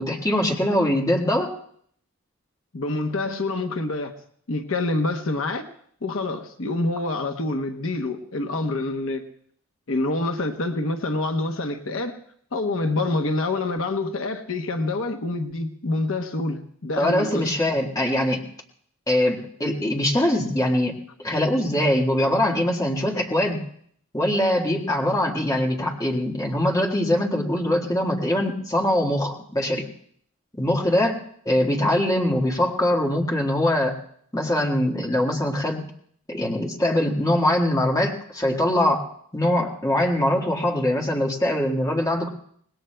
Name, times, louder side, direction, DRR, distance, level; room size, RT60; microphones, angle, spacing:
voice 1, 0.0-1.5 17.0-18.4 19.1-23.6 24.1-29.8 30.6-31.1 31.4-34.0 34.3-35.8 36.3-39.1 39.3-42.3, left 1 dB, 15° left, 0 dB, 1.6 m, -22 dB
voice 2, 2.7-4.1 4.5-5.6 6.0-9.3 9.9-12.2 12.5-17.5, left 2 dB, 65° left, 5 dB, 0.9 m, -26 dB
25.5 x 20.0 x 2.2 m, 0.63 s
head